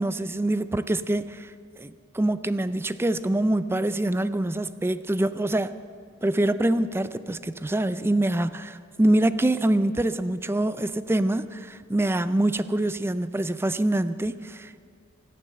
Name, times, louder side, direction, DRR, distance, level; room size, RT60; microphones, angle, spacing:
voice 1, 0.0-1.5 1.8-5.7 6.2-14.7, right 1 dB, 10° right, 13 dB, 0.4 m, -25 dB
24.0 x 8.8 x 6.6 m, 2.3 s
head